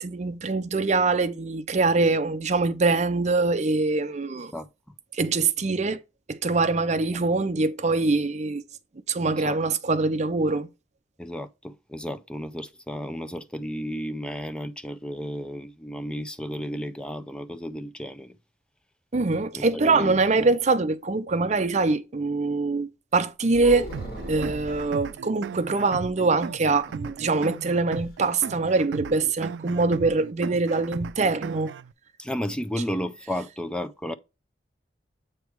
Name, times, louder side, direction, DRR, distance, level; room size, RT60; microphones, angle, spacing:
voice 1, 0.0-4.5 5.1-6.0 6.3-8.6 9.1-10.7 19.1-23.9 24.3-31.7, right 3 dB, 40° right, 0.6 m, -24 dB
voice 2, 11.2-18.3 19.5-20.5 32.2-34.1, equal, 5° left, 0.4 m, -33 dB
sound 1, 23.5-24.9 26.7-27.6 27.9-28.0 28.4-28.7, right 1 dB, 60° left, 3.5 m, -36 dB
sound 2, 23.9-31.9, right 6 dB, 85° right, 0.3 m, -37 dB
8.1 x 3.2 x 4.6 m
head